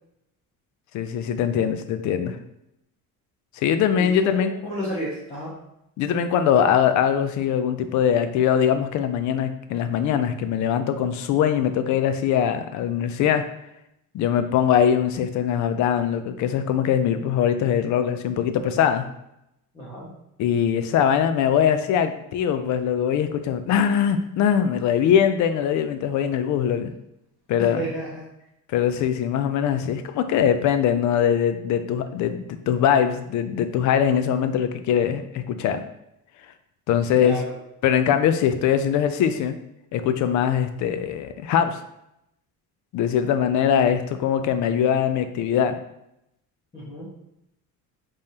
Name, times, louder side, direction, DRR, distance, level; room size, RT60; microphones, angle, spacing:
voice 1, 0.9-2.4 3.6-4.5 6.0-13.5 14.1-19.1 20.4-26.9 27.5-27.9 28.7-35.8 36.9-37.4 37.8-39.6 39.9-41.8 42.9-45.8, left 8 dB, 55° left, 9 dB, 0.4 m, -22 dB
voice 2, 4.0-5.5 19.7-20.1 27.6-28.3 37.1-37.5 46.7-47.1, equal, 20° left, -9 dB, 1.2 m, -31 dB
5.3 x 3.5 x 2.8 m, 0.83 s
cardioid pair, 180°, 36 cm